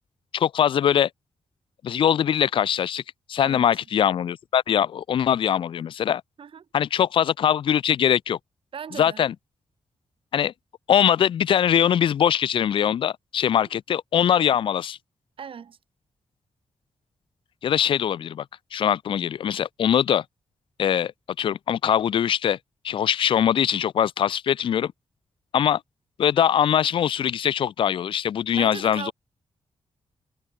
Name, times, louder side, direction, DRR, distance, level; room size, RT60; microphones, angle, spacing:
voice 1, 0.3-1.1 1.8-3.0 3.3-6.2 6.7-8.4 8.9-9.3 10.3-10.5 10.9-15.0 17.6-18.4 18.7-20.2 20.8-21.1 21.4-22.6 22.8-24.9 25.5-25.8 26.2-29.1, left 9 dB, 55° left, 0.4 m, -22 dB
voice 2, 3.4-3.7 6.4-6.7 8.7-9.2 13.4-13.7 15.4-15.8 28.6-29.1, right 7 dB, 60° right, 2.6 m, -38 dB
wide cardioid pair, 165°, 11 cm